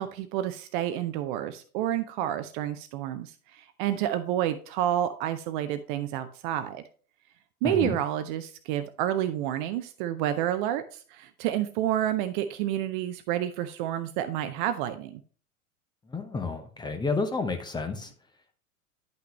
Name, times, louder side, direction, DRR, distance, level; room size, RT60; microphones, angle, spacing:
voice 1, 0.0-6.8 7.6-15.2, right 11 dB, 35° right, 10 dB, 0.6 m, -29 dB
voice 2, 7.6-8.0 16.1-18.1, left 3 dB, 10° left, 7 dB, 0.8 m, -30 dB
10.5 x 5.7 x 3.1 m, 0.42 s
figure-of-eight pair, 90°, 44 cm